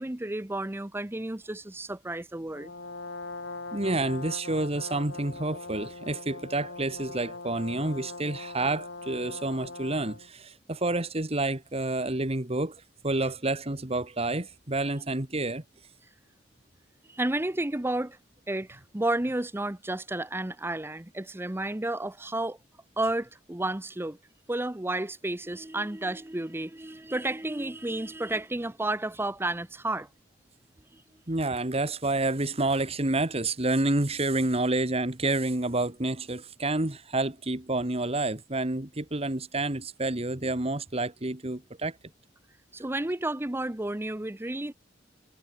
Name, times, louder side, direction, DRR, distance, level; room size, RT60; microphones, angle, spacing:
voice 1, 0.0-2.7 17.1-18.2 18.5-22.6 23.0-24.2 24.5-30.1 42.7-44.7, right 2 dB, 15° right, 0.8 m, -31 dB
Brass instrument, 2.5-10.3, left 3 dB, 80° left, 4.5 m, -41 dB
voice 2, 3.7-15.6 31.3-42.0, right 2 dB, 35° right, 1.9 m, -29 dB
head